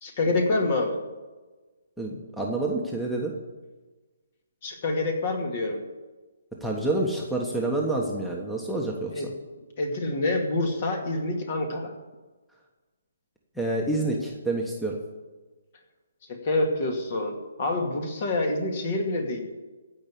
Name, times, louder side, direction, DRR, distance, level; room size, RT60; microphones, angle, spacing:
voice 1, 0.0-0.9 4.6-5.8 9.1-9.3 9.8-11.9 16.3-19.4, left 2 dB, 45° left, 3 dB, 2.3 m, -27 dB
voice 2, 2.0-3.4 6.6-9.1 13.6-15.0, right 2 dB, ahead, -1 dB, 1.3 m, -28 dB
15.5 x 5.5 x 8.6 m, 1.3 s
figure-of-eight pair, 140°, 0 cm